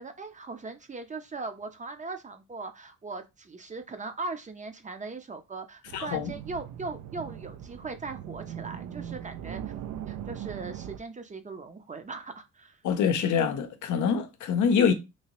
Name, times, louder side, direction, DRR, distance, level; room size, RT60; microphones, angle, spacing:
voice 1, 0.0-9.6 10.1-12.8, right 3 dB, 25° right, 0.6 m, -39 dB
sound 1, 5.8-11.0, right 10 dB, 70° right, 0.4 m, -40 dB
voice 2, 5.9-6.3 12.8-14.9, left 7 dB, 75° left, 0.6 m, -25 dB
3.0 x 2.7 x 3.0 m
cardioid pair, 90°, 30 cm